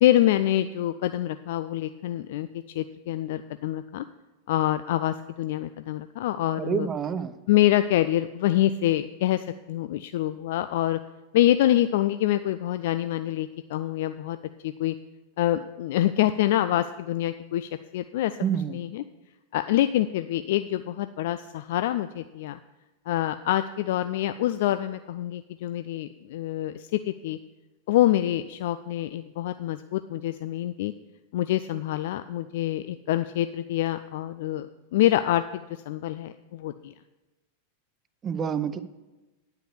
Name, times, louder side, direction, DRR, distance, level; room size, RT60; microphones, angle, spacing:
voice 1, 0.0-4.1 4.5-6.9 7.5-11.0 11.3-14.4 14.6-14.9 15.4-18.4 18.7-19.0 19.5-22.6 23.1-27.4 27.9-30.9 31.3-36.9, left 13 dB, 55° left, 11 dB, 0.3 m, -26 dB
voice 2, 6.6-7.3 18.4-18.8 38.2-38.8, right 7 dB, 25° right, 13 dB, 0.6 m, -28 dB
10.0 x 5.7 x 7.0 m, 1.1 s
figure-of-eight pair, 90°, 0 cm